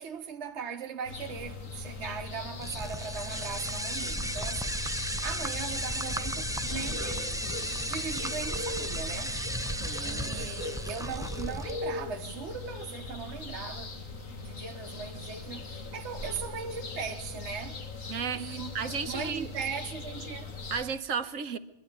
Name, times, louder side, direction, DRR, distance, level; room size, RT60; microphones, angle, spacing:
voice 1, 0.0-7.3 7.9-9.4 10.0-14.0 14.4-17.8 18.4-20.5, right 6 dB, 60° right, 1.3 m, -39 dB
sound 1, 1.1-20.8, left 3 dB, 90° left, 2.2 m, -40 dB
sound 2, 2.6-11.7, equal, 5° right, 0.5 m, -34 dB
Acoustic guitar / Strum, 6.7-12.9 13.3-13.4, left 3 dB, 25° left, 1.6 m, -52 dB
voice 2, 9.8-10.5 18.1-18.5 18.7-19.5 20.7-21.6, right 6 dB, 85° right, 1.4 m, -34 dB
23.5 x 12.0 x 9.4 m
omnidirectional pair, 1.3 m